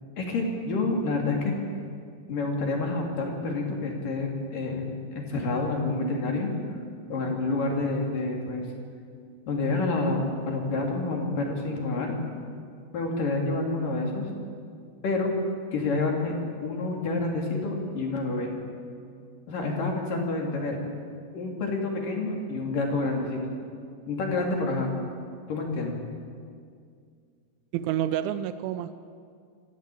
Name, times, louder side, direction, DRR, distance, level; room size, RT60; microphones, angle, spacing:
voice 1, 0.2-1.5 2.3-6.5 7.1-8.7 9.5-12.1 12.9-14.3 15.0-15.3 15.7-18.5 19.5-20.8 21.3-23.4 24.1-24.9 25.5-26.0, left 3 dB, 50° left, 0 dB, 4.3 m, -28 dB
voice 2, 27.7-28.9, right 11 dB, 90° right, 11 dB, 3.1 m, -28 dB
27.0 x 15.0 x 8.6 m, 2.2 s
omnidirectional pair, 5.3 m